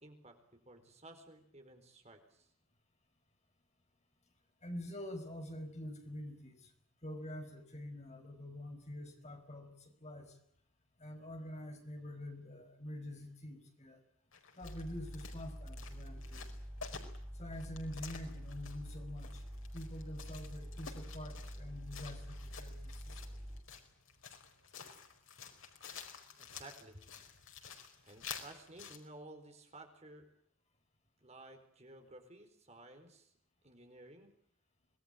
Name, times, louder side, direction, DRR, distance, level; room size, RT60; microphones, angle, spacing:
voice 1, 0.0-2.5 26.4-27.1 28.0-30.3 31.2-33.3 33.6-34.3, right 2 dB, 30° right, 5 dB, 4.2 m, -55 dB
voice 2, 4.6-6.7 7.0-10.4 11.0-14.0 14.6-16.5 17.3-19.4 19.7-23.2, left 1 dB, 35° left, 5 dB, 5.3 m, -46 dB
sound 1, 14.3-29.0, left 6 dB, 80° left, 4.8 m, -51 dB
sound 2, 14.6-23.6, equal, 5° right, 3.6 m, -47 dB
26.0 x 20.0 x 9.0 m, 0.69 s
head